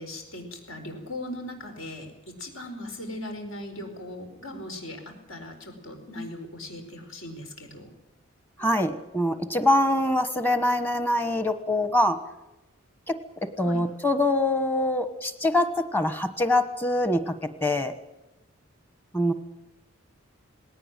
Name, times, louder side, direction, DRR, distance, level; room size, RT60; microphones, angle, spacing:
voice 1, 0.0-7.9 13.6-13.8, left 1 dB, 70° left, 4 dB, 4.7 m, -39 dB
voice 2, 8.6-12.2 13.1-17.9 19.1-19.3, left 1 dB, 10° left, 11 dB, 1.2 m, -24 dB
19.0 x 17.5 x 9.1 m, 0.97 s
head